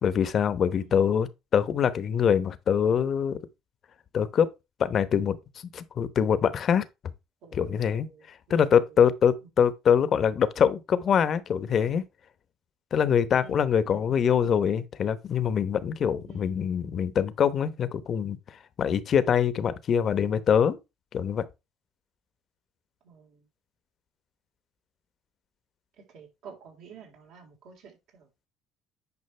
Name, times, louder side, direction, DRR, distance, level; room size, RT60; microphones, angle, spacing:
voice 1, 0.0-3.4 4.1-4.5 4.8-5.4 5.7-6.8 7.5-8.1 8.5-12.0 12.9-18.4 18.8-20.8 21.1-21.4, left 8 dB, 45° left, 0.9 m, -24 dB
voice 2, 7.4-8.2 8.5-8.7 13.4-14.2 16.3-16.5 23.0-23.4 26.1-28.5, right 5 dB, 75° right, 3.9 m, -50 dB
9.7 x 5.1 x 3.3 m
cardioid pair, 105°, 0 cm